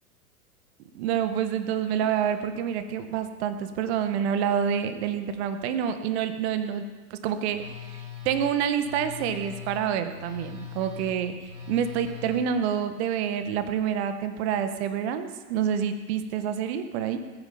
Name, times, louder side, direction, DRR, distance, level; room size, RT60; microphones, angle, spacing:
voice 1, 0.9-6.8 7.1-7.6 8.2-17.2, right 8 dB, 45° right, 9 dB, 1.6 m, -27 dB
Telephone, 7.5-12.4, left 9 dB, 80° right, 5.5 m, -41 dB
21.0 x 9.6 x 5.3 m, 1.3 s
figure-of-eight pair, 105°, 46 cm